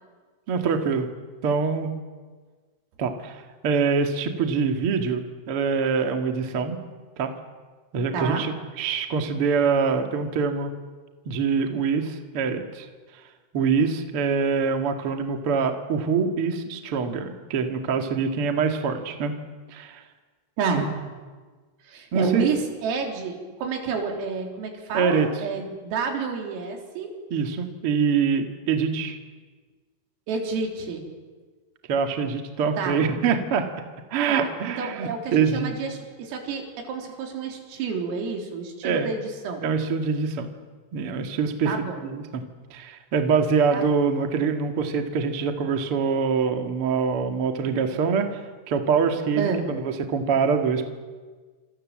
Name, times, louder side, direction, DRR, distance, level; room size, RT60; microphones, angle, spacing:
voice 1, 0.5-1.1 1.4-1.9 3.0-3.3 3.6-6.8 7.2-7.3 7.9-10.7 11.2-12.9 13.5-19.3 19.7-20.0 22.1-22.5 24.9-25.3 27.3-29.2 31.9-33.7 34.1-35.7 38.8-39.1 39.6-40.5 40.9-41.7 42.0-42.4 42.7-48.3 48.7-50.9, right 5 dB, 55° right, 5 dB, 1.5 m, -24 dB
voice 2, 8.1-8.4 20.6-20.9 21.8-27.1 30.3-31.1 32.8-33.1 34.3-39.6 41.7-42.0 43.7-44.0 49.4-49.7, right 5 dB, 80° right, 3 dB, 6.2 m, -29 dB
27.5 x 27.0 x 7.6 m, 1.4 s
omnidirectional pair, 5.9 m